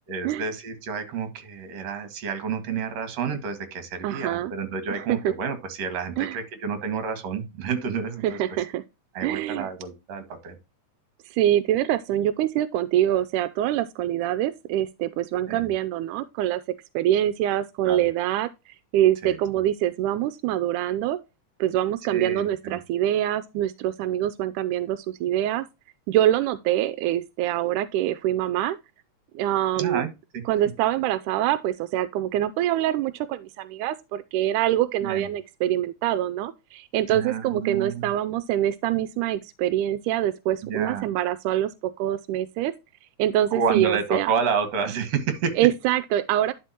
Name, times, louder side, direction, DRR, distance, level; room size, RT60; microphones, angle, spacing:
voice 1, 0.1-8.4 9.1-10.6 15.5-15.7 17.8-18.0 19.2-19.4 22.1-22.8 29.8-30.4 35.0-35.3 37.1-38.1 40.6-41.1 43.5-45.6, right 6 dB, 60° right, 2.8 m, -29 dB
voice 2, 4.0-4.5 4.9-5.3 6.2-6.4 8.2-8.8 9.2-9.7 11.3-16.6 16.9-18.5 18.9-21.2 21.6-25.6 26.1-28.8 29.4-30.0 30.5-42.7 43.2-44.3 45.6-46.5, right 12 dB, 90° right, 2.1 m, -25 dB
11.0 x 5.1 x 2.9 m
omnidirectional pair, 3.5 m